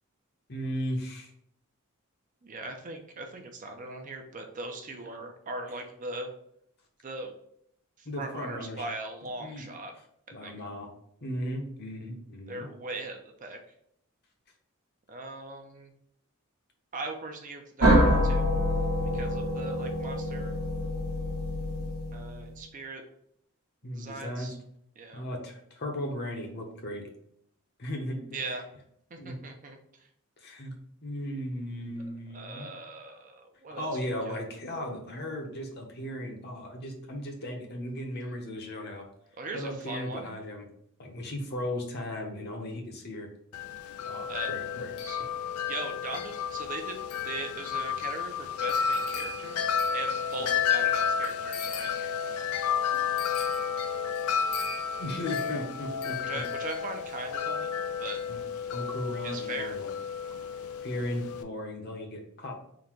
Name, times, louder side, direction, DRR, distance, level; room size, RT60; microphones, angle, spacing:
voice 1, 0.5-1.3 8.0-8.8 9.4-9.7 10.3-10.9 11.2-12.7 19.1-19.3 23.8-24.5 25.1-27.0 27.8-28.2 29.2-29.4 30.4-30.7 31.0-32.7 33.7-39.0 39.5-40.7 41.0-43.3 44.0-44.9 50.4-50.5 55.0-56.2 58.3-58.4 58.7-59.9 60.8-62.5, left 1 dB, 45° left, 2 dB, 0.8 m, -36 dB
voice 2, 2.4-6.3 7.0-7.3 8.2-9.9 10.4-10.6 12.5-13.6 15.1-15.9 16.9-18.5 19.1-20.5 22.1-23.0 23.9-24.6 25.0-25.2 28.3-28.6 29.1-29.8 32.3-33.9 34.3-34.4 39.4-40.3 44.3-44.5 45.0-45.2 45.7-47.0 47.2-49.6 49.9-52.1 56.2-57.7 58.0-58.2 59.2-59.8, right 2 dB, 35° right, 4 dB, 0.5 m, -39 dB
sound 1, 17.8-22.5, equal, 70° right, 1.0 m, -26 dB
Wind chime, 43.5-61.4, left 7 dB, 75° left, 0.3 m, -31 dB
3.8 x 2.2 x 4.4 m, 0.72 s
head